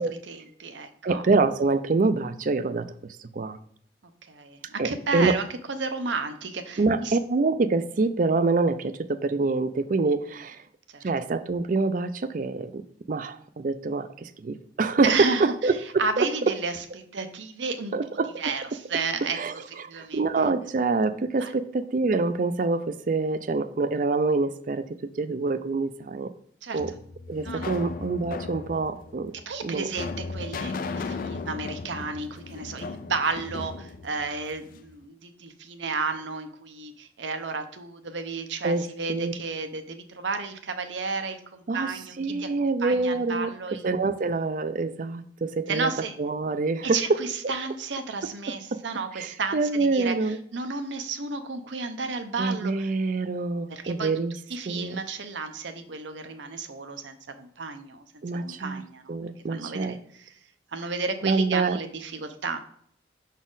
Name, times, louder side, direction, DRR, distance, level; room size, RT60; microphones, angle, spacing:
voice 1, 0.3-1.2 4.3-7.2 10.9-11.0 15.0-15.5 16.0-16.8 17.1-17.9 18.4-19.4 19.9-20.2 21.4-21.5 26.6-26.8 27.4-27.7 29.5-42.5 42.8-43.9 45.7-46.1 46.8-52.9 53.7-54.1 54.5-58.0 58.3-59.2 59.5-60.0 60.7-62.6, right 4 dB, 75° right, 8 dB, 0.7 m, -32 dB
voice 2, 1.0-2.9 3.3-3.6 4.8-5.4 6.8-10.6 11.0-12.8 13.1-16.3 17.9-18.3 19.3-24.9 25.2-26.3 26.7-26.9 27.3-29.3 29.6-29.9 38.6-39.3 41.7-43.5 43.8-45.9 46.2-47.2 48.5-48.8 49.1-50.4 52.4-54.3 54.7-55.0 58.2-58.8 59.1-60.0 61.2-61.8, right 3 dB, 45° right, 11 dB, 0.4 m, -26 dB
sound 1, 26.8-34.9, left 4 dB, 45° left, 0.3 m, -36 dB
6.1 x 4.1 x 3.8 m, 0.64 s
head